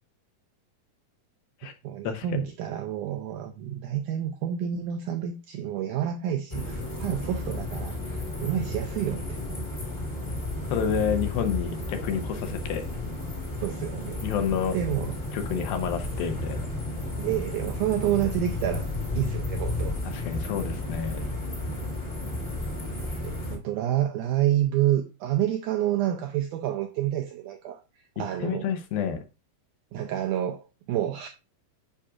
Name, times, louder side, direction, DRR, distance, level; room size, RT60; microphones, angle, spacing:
voice 1, 1.8-9.4 13.6-14.3 14.7-15.2 17.1-20.0 23.1-27.8 28.2-28.7 29.9-31.3, right 11 dB, 85° right, 1.8 m, -29 dB
sound 1, 6.5-23.6, left 2 dB, 30° left, 0.8 m, -33 dB
voice 2, 10.7-12.9 14.2-14.8 15.3-16.6 20.1-21.3 28.4-29.2, left 7 dB, 85° left, 2.6 m, -29 dB
9.7 x 4.9 x 2.4 m
omnidirectional pair, 4.2 m